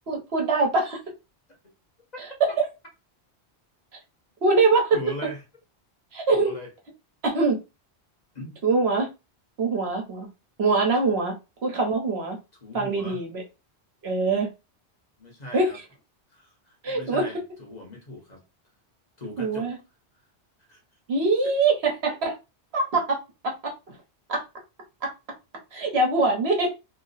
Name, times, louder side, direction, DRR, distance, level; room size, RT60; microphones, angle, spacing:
voice 1, 0.1-1.0 2.2-2.5 4.4-5.0 6.1-6.5 7.2-7.6 8.6-9.1 9.6-10.3 10.6-11.3 11.6-12.4 12.7-13.4 14.0-14.5 15.5-15.7 16.8-17.2 19.4-19.8 21.1-22.3 22.7-24.0 24.3-24.4 25.0-25.1 25.7-26.7, right 3 dB, 70° right, 1.2 m, -23 dB
voice 2, 4.9-5.4 6.3-6.7 8.3-8.5 12.6-13.2 15.2-15.8 16.3-18.4 19.2-19.7 20.7-20.8 22.1-22.2, left 1 dB, 40° left, 1.0 m, -39 dB
3.1 x 2.0 x 3.9 m
omnidirectional pair, 1.1 m